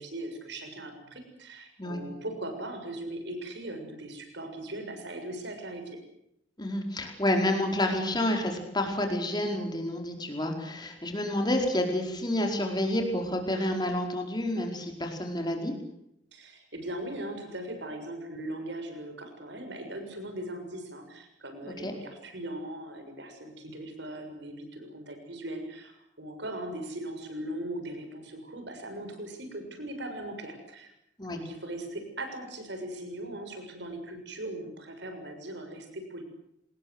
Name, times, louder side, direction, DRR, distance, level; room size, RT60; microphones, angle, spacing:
voice 1, 0.0-5.8 16.3-30.9 31.3-36.2, right 1 dB, 60° right, 6 dB, 6.8 m, -39 dB
voice 2, 6.6-15.7 21.6-21.9 31.2-31.4, left 1 dB, 20° left, 3 dB, 4.8 m, -29 dB
27.0 x 20.5 x 8.1 m, 0.78 s
head